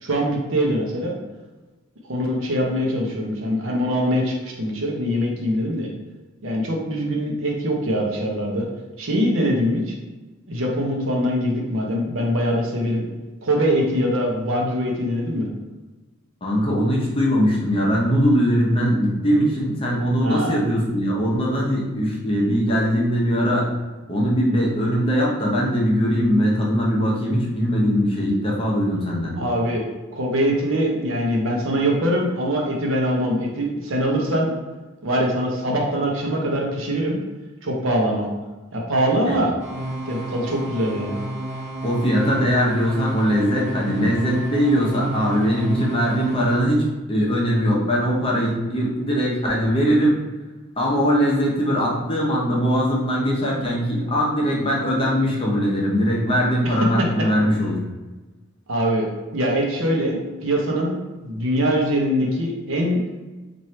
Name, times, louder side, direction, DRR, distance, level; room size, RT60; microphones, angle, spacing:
voice 1, 0.0-1.1 2.0-5.9 6.4-8.7 9.0-9.9 10.5-13.0 13.4-15.5 20.2-20.6 29.4-29.8 30.1-34.5 35.0-37.2 37.6-38.3 38.7-39.5 40.0-41.2 56.6-56.8 58.7-59.1 59.3-63.0, equal, 70° right, -1 dB, 0.8 m, -23 dB
voice 2, 16.4-23.7 24.1-29.3 39.3-39.4 41.8-50.2 50.8-57.8, equal, 25° left, -3 dB, 0.7 m, -21 dB
sound 1, 39.6-46.6, right 1 dB, 30° right, 0.9 m, -31 dB
3.2 x 2.6 x 4.2 m, 1.2 s
head